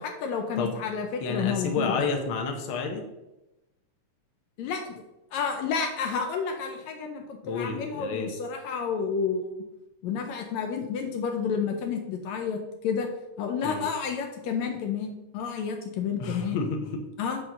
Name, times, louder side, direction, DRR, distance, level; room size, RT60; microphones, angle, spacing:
voice 1, 0.0-2.1 4.6-5.0 5.3-9.5 10.0-13.1 13.4-16.6 17.2-17.4, left 6 dB, 75° left, 4 dB, 1.9 m, -30 dB
voice 2, 1.2-3.0 7.4-8.3 13.6-13.9 16.2-17.0, left 4 dB, 60° left, 3 dB, 1.6 m, -30 dB
7.9 x 4.3 x 5.7 m, 0.95 s
omnidirectional pair, 3.4 m